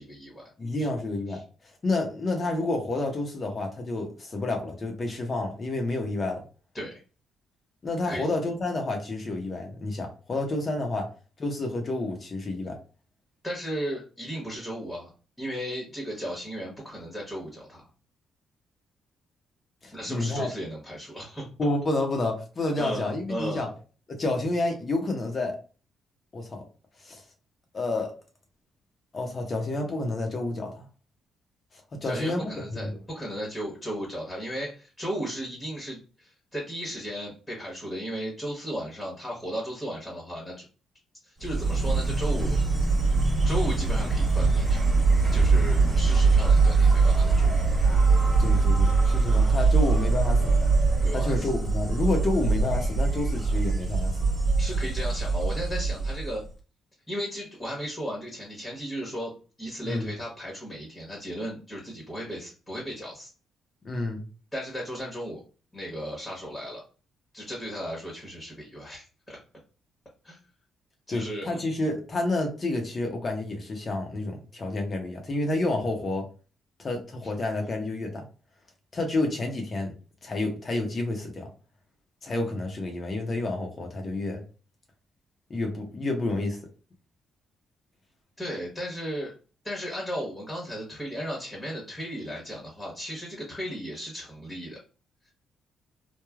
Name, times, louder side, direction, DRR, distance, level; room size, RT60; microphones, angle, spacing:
voice 1, 0.0-0.4 0.8-0.9 1.3-1.4 6.7-7.0 8.0-8.3 13.4-15.1 15.4-17.8 19.9-21.5 22.8-23.7 32.0-40.6 41.2-42.6 43.4-44.8 45.3-47.6 51.0-51.5 54.6-56.4 57.1-59.3 59.6-63.3 64.5-65.4 65.7-66.8 67.3-69.4 70.2-70.4 71.1-71.5 77.2-77.3 88.4-89.3 89.6-94.8, equal, 15° left, -2 dB, 1.1 m, -35 dB
voice 2, 0.6-1.4 1.8-6.4 7.8-11.1 11.4-12.8 19.8-20.5 21.6-23.7 24.1-25.6 26.3-26.6 27.0-27.2 27.7-28.1 29.1-30.8 32.0-32.9 48.4-50.5 51.1-54.1 59.8-60.1 63.8-64.2 71.1-76.2 76.8-78.2 78.9-79.9 80.2-81.5 82.2-84.4 85.5-86.6, left 2 dB, 40° left, 3 dB, 0.8 m, -29 dB
Insect, 41.4-56.5, right 3 dB, 25° right, 1.2 m, -22 dB
3.1 x 2.2 x 2.3 m, 0.35 s
cardioid pair, 90°, 0 cm